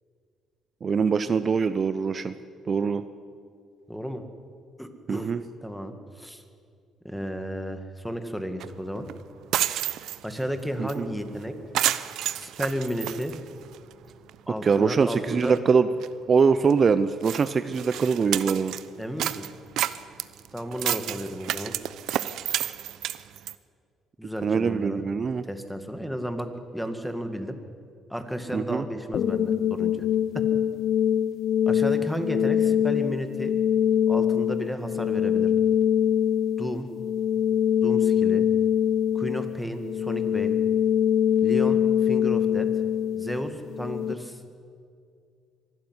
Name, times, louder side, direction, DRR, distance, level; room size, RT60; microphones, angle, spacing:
voice 1, 0.8-2.3 2.7-3.0 5.1-5.4 10.8-11.1 14.6-15.9 16.3-18.7 24.4-25.4 28.5-28.8, right 5 dB, 40° right, 12 dB, 0.7 m, -23 dB
voice 2, 3.9-4.2 4.8-6.4 7.0-9.1 10.2-11.5 12.4-13.4 14.5-15.6 19.0-19.4 20.5-21.7 24.2-25.0 25.4-27.6 28.1-30.0 30.3-30.4 31.7-33.5 34.1-35.5 36.6-36.9 37.8-38.5 39.1-40.5 41.4-42.7 43.1-44.4, equal, ahead, 6 dB, 2.1 m, -33 dB
sound 1, 8.6-8.7 9.1-9.2 9.4-10.4 10.9-11.0 11.3-11.4 11.7-13.9 14.3-14.4 15.0-15.1 15.3-15.6 16.0-16.1 16.7-16.8 17.2-18.8 19.2-23.5, right 12 dB, 75° right, 0.7 m, -30 dB
sound 2, 29.1-44.1, left 9 dB, 60° left, 0.6 m, -23 dB
24.0 x 12.0 x 9.7 m, 2.4 s
cardioid pair, 90°, 0 cm